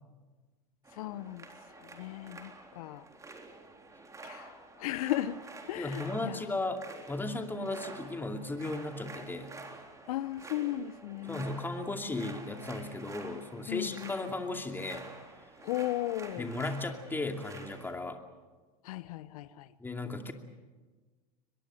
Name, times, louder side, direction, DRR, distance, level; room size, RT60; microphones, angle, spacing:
sound 1, 0.8-17.9, right 3 dB, 15° right, 3.7 m, -49 dB
voice 1, 0.9-3.1 4.2-5.4 5.7-6.5 10.1-11.5 13.7-14.2 15.6-16.5 18.8-19.7, left 14 dB, 65° left, 16 dB, 0.8 m, -36 dB
voice 2, 5.8-6.8 7.1-9.5 11.3-15.1 16.4-18.2 19.8-20.3, left 2 dB, 10° left, 5 dB, 2.6 m, -36 dB
23.5 x 21.5 x 7.7 m, 1.3 s
hypercardioid pair, 105°, 20 cm